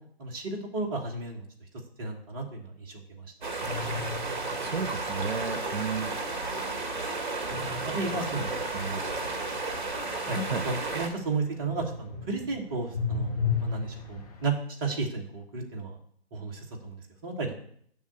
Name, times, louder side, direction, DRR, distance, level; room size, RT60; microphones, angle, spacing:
voice 1, 0.2-1.4 2.0-3.3 7.8-8.5 10.3-14.5 14.8-15.9 16.3-17.0 17.2-17.5, right 3 dB, 20° right, 0 dB, 1.4 m, -33 dB
sound 1, 3.4-11.1, right 3 dB, 45° right, 1.9 m, -33 dB
sound 2, 3.6-5.3 7.5-11.3 11.6-14.6, left 5 dB, 35° left, 1.7 m, -35 dB
voice 2, 4.6-6.1 8.4-9.0 10.5-10.7, right 5 dB, 65° right, 10 dB, 0.9 m, -33 dB
7.3 x 6.0 x 7.7 m, 0.63 s
figure-of-eight pair, 150°, 32 cm